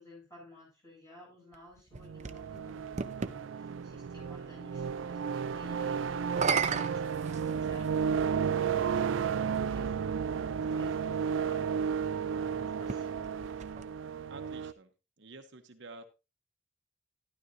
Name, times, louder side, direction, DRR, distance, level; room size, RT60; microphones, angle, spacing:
voice 1, 0.0-11.9 12.3-13.3, left 1 dB, 15° left, -3 dB, 7.6 m, -55 dB
sound 1, 1.5-3.4 6.2-8.0 8.9-9.0 12.7-14.3, right 5 dB, 40° right, 0.6 m, -35 dB
sound 2, 1.9-14.7, right 7 dB, 80° right, 0.4 m, -33 dB
voice 2, 14.3-14.9 15.2-16.0, right 3 dB, 65° right, 6 dB, 0.9 m, -49 dB
12.5 x 11.5 x 2.7 m, 0.28 s
head